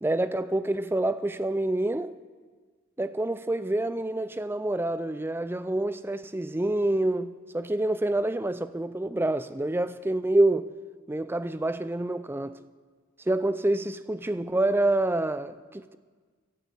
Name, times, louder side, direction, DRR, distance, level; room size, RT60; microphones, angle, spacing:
voice 1, 0.0-2.2 3.0-10.7 11.1-12.6 13.3-16.0, right 1 dB, 10° right, 0.4 m, -27 dB
16.0 x 10.5 x 8.2 m
head